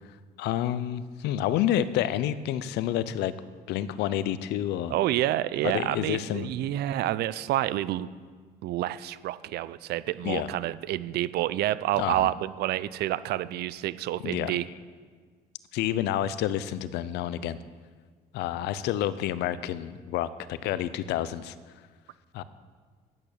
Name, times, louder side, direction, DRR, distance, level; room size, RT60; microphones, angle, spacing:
voice 1, 0.4-3.3 3.7-4.9 5.6-6.5 10.2-10.5 12.0-12.3 14.2-14.6 15.7-17.6 18.3-21.5 22.3-22.4, left 11 dB, 85° left, 15 dB, 0.6 m, -29 dB
voice 2, 4.9-8.1 8.6-14.7, right 14 dB, 70° right, 17 dB, 0.5 m, -28 dB
10.5 x 8.7 x 6.6 m, 1.5 s
cardioid pair, 110°, 17 cm